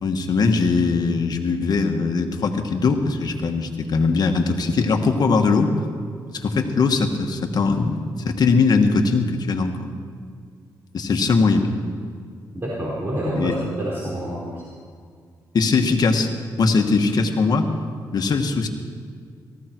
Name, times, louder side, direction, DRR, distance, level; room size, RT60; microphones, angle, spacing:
voice 1, 0.0-5.7 6.3-9.7 10.9-11.7 13.4-13.5 15.5-16.3 16.6-17.7 18.1-18.7, left 4 dB, 60° left, 4 dB, 1.7 m, -20 dB
voice 2, 12.5-14.6, equal, 30° right, -6 dB, 4.3 m, -27 dB
18.0 x 15.0 x 4.6 m, 2.1 s
cardioid pair, 75°, 8 cm